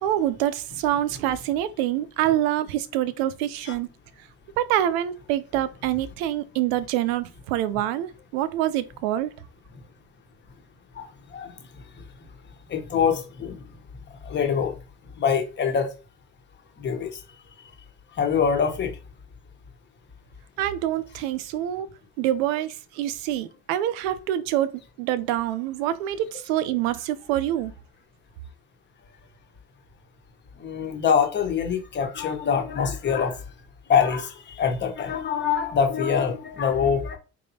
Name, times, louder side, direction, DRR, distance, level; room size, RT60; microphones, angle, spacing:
voice 1, 0.0-3.9 4.6-9.3 20.6-21.9 22.2-24.7 25.0-27.7, right 12 dB, 85° right, 0.6 m, -26 dB
voice 2, 10.9-11.6 12.7-13.6 14.2-14.7 15.2-15.9 16.8-17.2 18.2-19.0 30.6-33.4 33.9-37.2, left 7 dB, 35° left, 1.2 m, -24 dB
4.3 x 3.4 x 2.8 m
supercardioid pair, 95°, 30 cm